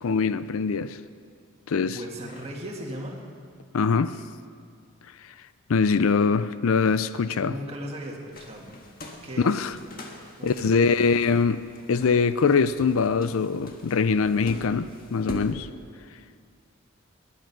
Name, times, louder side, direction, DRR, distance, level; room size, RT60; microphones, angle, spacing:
voice 1, 0.0-1.0 1.7-2.0 3.7-4.2 5.7-7.5 9.4-9.7 10.4-11.6 11.9-15.7, left 5 dB, 70° left, 0.5 m, -23 dB
voice 2, 1.9-3.2 7.3-8.7 9.2-9.6 10.4-11.0, equal, 30° right, 2.2 m, -37 dB
sound 1, 8.3-15.5, equal, 45° left, 1.6 m, -42 dB
21.0 x 10.0 x 6.0 m
head